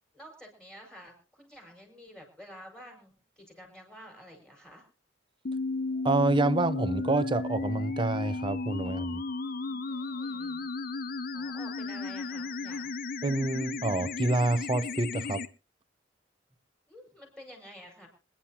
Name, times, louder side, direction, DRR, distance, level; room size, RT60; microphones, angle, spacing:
voice 1, 0.1-4.8 9.5-10.7 11.3-12.9 16.9-18.1, equal, 5° left, 5.0 m, -50 dB
sound 1, 5.5-15.5, left 3 dB, 45° left, 0.6 m, -34 dB
voice 2, 6.0-9.2 13.2-15.4, right 2 dB, 25° right, 0.6 m, -27 dB
26.0 x 10.0 x 2.9 m
head